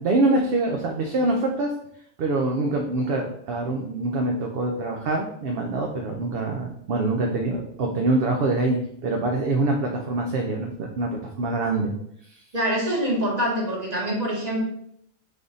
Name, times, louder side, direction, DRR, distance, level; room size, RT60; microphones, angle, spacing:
voice 1, 0.0-1.7 2.2-11.9, right 2 dB, 60° right, 1 dB, 0.7 m, -25 dB
voice 2, 12.5-14.6, equal, 35° right, -2 dB, 1.3 m, -25 dB
3.7 x 3.4 x 4.0 m, 0.72 s
omnidirectional pair, 1.2 m